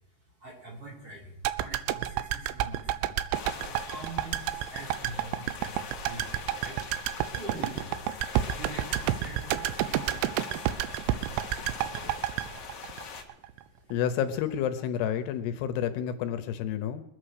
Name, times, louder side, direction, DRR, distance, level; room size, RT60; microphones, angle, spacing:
voice 1, 0.3-3.3 3.6-8.0 8.5-10.2 10.5-10.8 13.6-13.9, right 2 dB, 35° right, -6 dB, 6.2 m, -44 dB
sound 1, 1.4-13.6 13.9-14.0, right 12 dB, 85° right, 2.9 m, -30 dB
sound 2, 3.3-13.2, left 6 dB, 60° left, 1.7 m, -43 dB
voice 2, 13.9-17.0, left 9 dB, 80° left, 9 dB, 2.9 m, -30 dB
23.0 x 8.4 x 6.6 m, 0.86 s
omnidirectional pair, 4.9 m